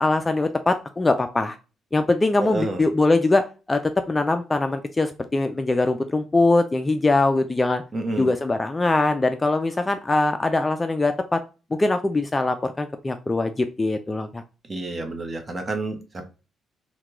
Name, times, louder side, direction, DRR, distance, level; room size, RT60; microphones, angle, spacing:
voice 1, 0.0-1.6 1.9-7.8 8.2-11.4 11.7-14.4, left 2 dB, 20° left, 0.3 m, -22 dB
voice 2, 2.4-2.8 7.9-8.3 14.7-16.2, right 2 dB, 30° right, 0.8 m, -29 dB
2.9 x 2.2 x 3.5 m
cardioid pair, 90°, 0 cm